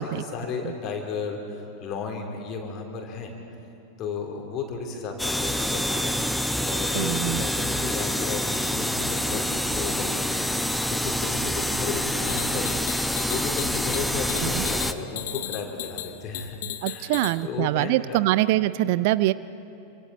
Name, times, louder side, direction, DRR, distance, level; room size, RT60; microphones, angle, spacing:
voice 1, 0.0-3.4 4.0-6.1 6.6-10.4 10.9-17.2 17.4-18.2, left 5 dB, 35° left, 2 dB, 3.4 m, -34 dB
sound 1, 5.2-14.9, left 1 dB, ahead, 0.8 m, -27 dB
voice 2, 6.9-7.5 14.4-14.7 16.8-19.3, right 17 dB, 50° right, 17 dB, 0.4 m, -24 dB
sound 2, 12.3-17.4, left 13 dB, 55° left, 0.9 m, -36 dB
27.5 x 25.0 x 4.3 m, 2.8 s
figure-of-eight pair, 90°, 0 cm